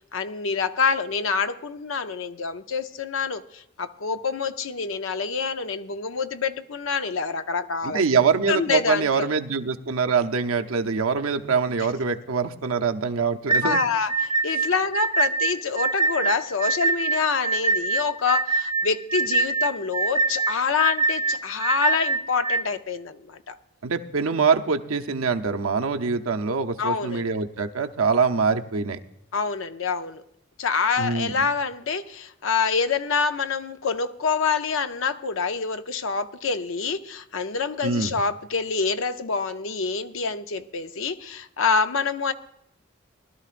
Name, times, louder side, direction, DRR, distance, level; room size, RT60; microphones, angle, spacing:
voice 1, 0.1-8.0 8.5-9.3 13.6-23.6 26.8-27.4 29.3-30.2 30.6-42.3, left 5 dB, 70° left, 0.6 m, -26 dB
voice 2, 7.8-13.8 23.8-29.0 31.0-31.3 37.8-38.1, right 5 dB, 85° right, 0.7 m, -24 dB
sound 1, 13.5-22.6, right 3 dB, 20° right, 0.4 m, -24 dB
20.0 x 12.5 x 2.5 m
head